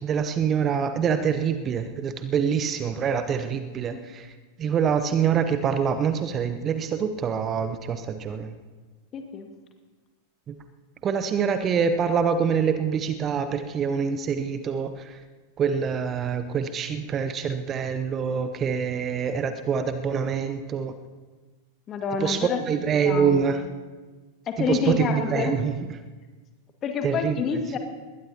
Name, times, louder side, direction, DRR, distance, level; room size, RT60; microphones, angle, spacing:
voice 1, 0.0-4.3 4.6-8.5 10.5-10.6 11.0-15.2 15.6-20.9 22.2-23.6 24.6-25.8 27.0-27.4, right 7 dB, 25° right, 10 dB, 0.8 m, -25 dB
voice 2, 9.1-9.5 21.9-22.6 23.0-23.4 24.5-25.6 26.8-27.8, left 6 dB, 30° left, 4 dB, 2.0 m, -28 dB
20.5 x 18.0 x 2.9 m, 1.3 s
figure-of-eight pair, 90°, 0 cm